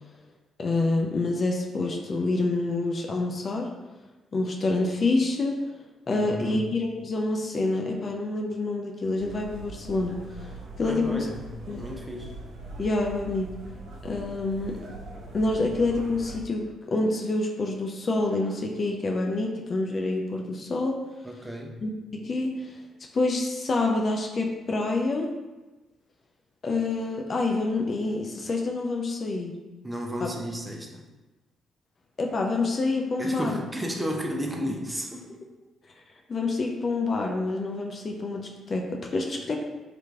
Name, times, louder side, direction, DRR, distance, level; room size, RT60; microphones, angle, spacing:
voice 1, 0.6-3.7 4.3-5.6 6.1-10.5 10.8-11.3 11.7-11.9 12.8-13.5 14.0-14.8 15.3-21.0 21.8-22.8 23.1-25.3 26.6-29.6 32.2-33.6 36.3-39.6, left 2 dB, 45° left, 1 dB, 0.4 m, -27 dB
voice 2, 6.1-6.6 10.8-11.5 11.7-12.3 21.2-21.7 29.8-31.0 33.2-35.4, equal, 10° right, 1 dB, 0.6 m, -33 dB
sound 1, 9.2-16.4, right 2 dB, 60° right, 0.7 m, -42 dB
3.0 x 2.5 x 3.3 m, 1.1 s
hypercardioid pair, 45°, 0 cm